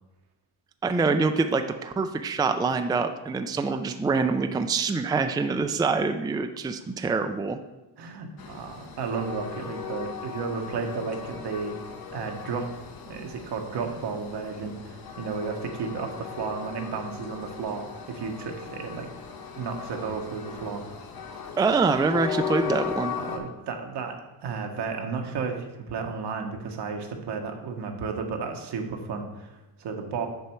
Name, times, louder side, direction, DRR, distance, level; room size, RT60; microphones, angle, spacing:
voice 1, 0.8-7.6 21.6-23.1, right 4 dB, 10° right, 7 dB, 0.4 m, -25 dB
voice 2, 8.0-11.8 12.1-12.7 13.1-19.1 19.6-20.8 23.2-24.2 24.4-30.3, right 5 dB, 75° right, 3 dB, 1.2 m, -33 dB
Train, 8.4-23.4, left 7 dB, 60° left, 1.1 m, -37 dB
6.8 x 5.3 x 4.5 m, 1.0 s
cardioid pair, 85°, 41 cm